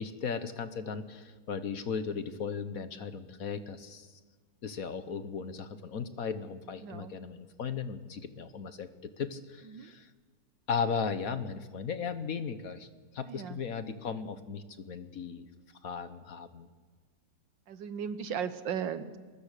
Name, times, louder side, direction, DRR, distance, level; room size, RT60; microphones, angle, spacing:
voice 1, 0.0-4.1 4.6-10.1 10.7-12.9 13.1-15.5 15.8-16.7, left 6 dB, 55° left, 11 dB, 1.4 m, -36 dB
voice 2, 6.8-7.1 9.6-9.9 13.2-13.6 17.7-19.2, right 7 dB, 80° right, 12 dB, 1.8 m, -36 dB
23.5 x 21.0 x 6.7 m, 1.4 s
omnidirectional pair, 1.9 m